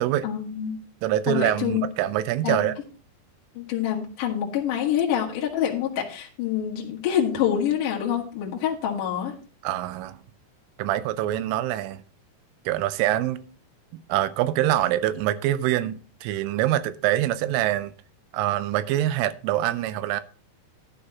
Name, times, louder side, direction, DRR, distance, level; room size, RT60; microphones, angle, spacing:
voice 1, 0.2-0.8 1.3-1.8 2.4-2.7 3.6-9.3, left 9 dB, 55° left, 2.6 m, -26 dB
voice 2, 1.0-2.8 9.6-10.2 10.8-12.0 12.7-13.4 14.1-17.9 18.3-20.2, right 13 dB, 85° right, 3.2 m, -25 dB
11.5 x 11.5 x 2.9 m
omnidirectional pair, 5.9 m